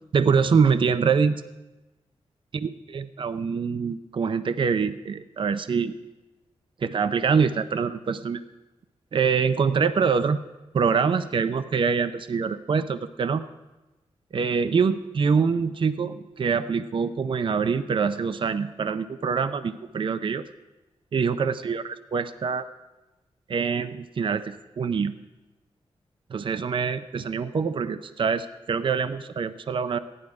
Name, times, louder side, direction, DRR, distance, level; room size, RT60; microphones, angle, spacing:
voice 1, 0.1-1.4 2.6-5.9 6.8-8.4 9.1-10.4 10.7-13.4 14.3-20.5 21.1-21.8 22.1-22.7 23.5-25.1 26.3-30.0, right 5 dB, 50° right, 11 dB, 0.5 m, -24 dB
15.0 x 11.0 x 4.8 m, 1.1 s
wide cardioid pair, 105°, 11 cm